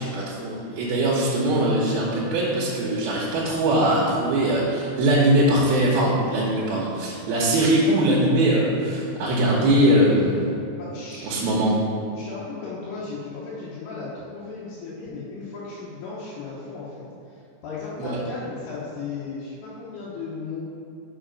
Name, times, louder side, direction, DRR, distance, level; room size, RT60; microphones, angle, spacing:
voice 1, 0.0-10.4 11.2-11.7 18.0-18.2, right 1 dB, 75° right, -5 dB, 2.7 m, -21 dB
voice 2, 10.7-11.6 12.1-17.0 17.3-20.6, left 4 dB, 85° left, -9 dB, 3.1 m, -36 dB
6.5 x 5.0 x 5.0 m, 2.6 s
omnidirectional pair, 4.6 m